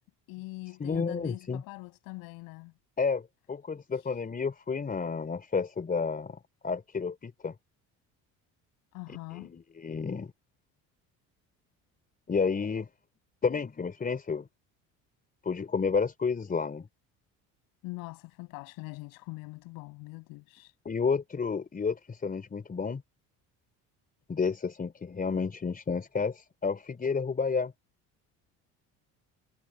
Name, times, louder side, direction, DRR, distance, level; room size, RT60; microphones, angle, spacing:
voice 1, 0.3-2.7 3.9-4.2 8.9-9.5 17.8-20.7, left 24 dB, 85° left, 6.8 m, -43 dB
voice 2, 0.8-1.6 3.0-7.5 9.1-10.3 12.3-12.9 13.4-14.5 15.4-16.9 20.9-23.0 24.3-27.7, left 5 dB, 25° left, 3.8 m, -31 dB
cardioid pair, 110°, 34 cm